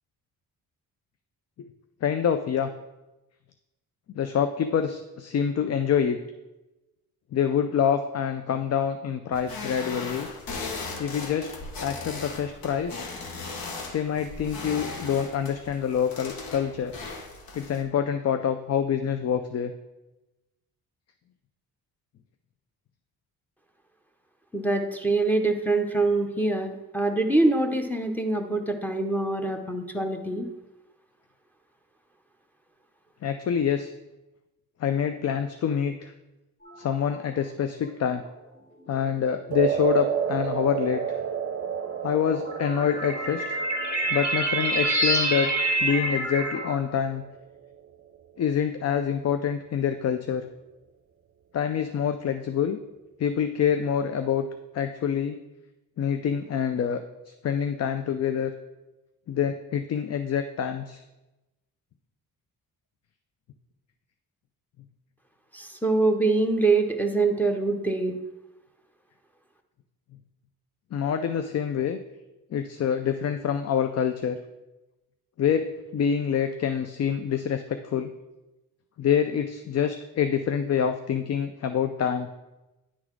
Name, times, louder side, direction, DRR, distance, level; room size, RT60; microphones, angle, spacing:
voice 1, 2.0-2.7 4.1-6.2 7.3-10.3 11.0-11.5 11.8-13.0 13.9-16.9 17.5-19.7 33.2-33.9 34.8-36.1 36.8-38.2 38.9-41.0 42.0-43.4 44.1-45.5 45.8-47.2 48.4-50.5 51.5-52.8 53.2-54.5 54.7-55.4 56.0-57.0 57.3-58.5 59.3-61.0 70.9-72.0 72.5-74.4 75.4-75.7 75.9-78.1 79.0-82.3, left 8 dB, 45° left, 9 dB, 0.5 m, -26 dB
sound 1, 9.3-17.8, left 3 dB, 65° left, 1.2 m, -38 dB
voice 2, 24.5-30.5 65.5-68.1, right 2 dB, 5° left, 4 dB, 0.8 m, -24 dB
sound 2, 36.6-37.3 38.1-38.3 39.4-39.5 41.7-46.8, right 1 dB, 25° left, 2.2 m, -27 dB
sound 3, 39.5-47.9, right 8 dB, 40° right, 0.5 m, -32 dB
9.8 x 3.9 x 4.6 m, 1.0 s
cardioid pair, 95°, 38 cm